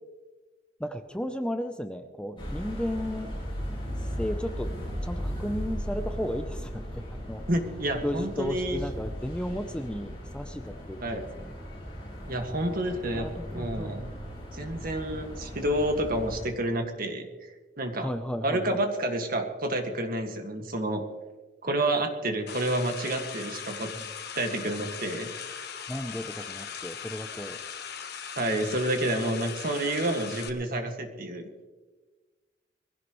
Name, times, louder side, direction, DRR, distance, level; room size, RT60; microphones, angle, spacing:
voice 1, 0.8-3.3 4.0-4.7 5.0-7.5 8.0-11.6 13.1-14.1 18.0-18.9 24.0-24.1 25.9-27.6, equal, 5° left, 8 dB, 0.6 m, -34 dB
sound 1, 2.4-16.5, equal, 30° left, 6.4 m, -37 dB
voice 2, 7.5-8.8 11.0-11.3 12.3-14.0 14.5-17.3 17.8-18.1 18.4-21.0 21.6-23.9 24.4-25.3 28.4-31.4, right 1 dB, 50° right, 4 dB, 1.9 m, -29 dB
sound 2, 22.5-30.5, left 7 dB, 60° left, 1.3 m, -39 dB
22.0 x 16.0 x 3.2 m, 1.3 s
head